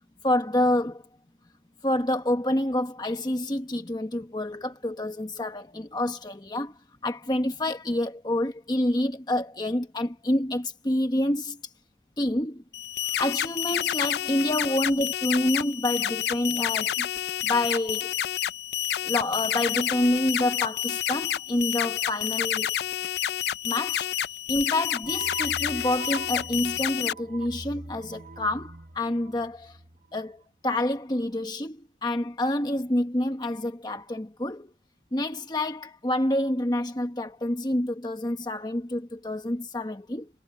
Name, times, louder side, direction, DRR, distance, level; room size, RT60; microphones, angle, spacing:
voice 1, 0.2-1.0 1.8-6.7 7.0-11.6 12.2-12.6 13.2-17.1 17.4-18.1 19.0-22.7 23.6-24.1 24.5-29.8 30.1-34.7 35.1-40.3, left 1 dB, 20° left, 1.0 m, -28 dB
sound 1, 12.7-27.1, left 11 dB, 60° left, 0.4 m, -29 dB
sound 2, 25.0-30.2, right 4 dB, 40° right, 1.0 m, -42 dB
head